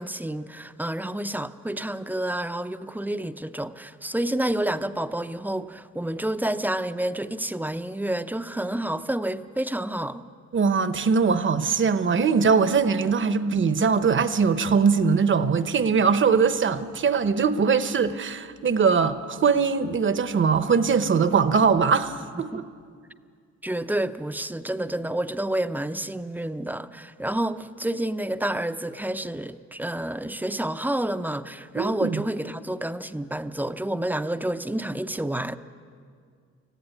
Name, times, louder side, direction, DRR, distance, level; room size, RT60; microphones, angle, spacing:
voice 1, 0.0-10.2 22.5-22.7 23.6-35.6, right 1 dB, 5° right, 0.6 m, -29 dB
voice 2, 10.5-22.6 31.8-32.2, right 5 dB, 40° right, 1.0 m, -21 dB
19.5 x 14.5 x 9.5 m
cardioid pair, 90°, 30 cm